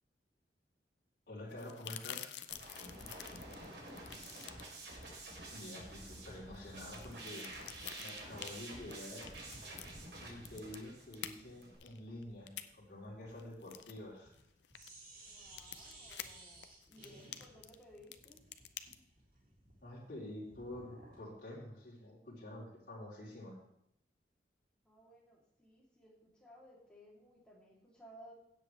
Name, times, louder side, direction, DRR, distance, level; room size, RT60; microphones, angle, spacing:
voice 1, 1.3-2.3 5.5-7.5 8.0-9.3 10.2-14.3 19.8-23.6, left 1 dB, 50° left, -6 dB, 3.5 m, -48 dB
sound 1, 1.4-18.9, left 11 dB, 80° left, 0.6 m, -50 dB
sound 2, 2.5-11.8, right 2 dB, 80° right, 3.7 m, -49 dB
voice 2, 2.9-4.6 15.2-18.4 24.8-28.3, equal, 5° left, -5 dB, 2.9 m, -60 dB
sound 3, 9.3-14.5 14.7-21.3, right 1 dB, 55° right, 3.2 m, -58 dB
16.5 x 7.8 x 3.3 m, 0.75 s
head